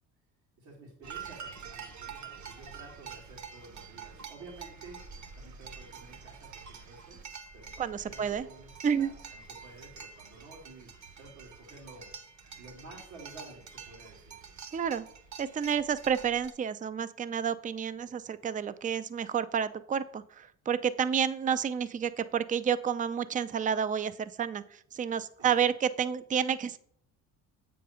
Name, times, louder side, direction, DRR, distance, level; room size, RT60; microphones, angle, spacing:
voice 1, 0.6-5.0 5.4-7.2 7.5-8.7 8.9-10.9 11.2-14.3 25.4-25.7, right 2 dB, 80° right, -5 dB, 2.3 m, -52 dB
sound 1, 1.0-16.5, right 6 dB, 45° right, 1.1 m, -47 dB
voice 2, 7.8-8.5 8.8-9.1 14.7-15.1 15.4-26.8, right 7 dB, 20° right, 14 dB, 0.4 m, -30 dB
7.5 x 3.9 x 5.6 m, 0.64 s
supercardioid pair, 65°, 40 cm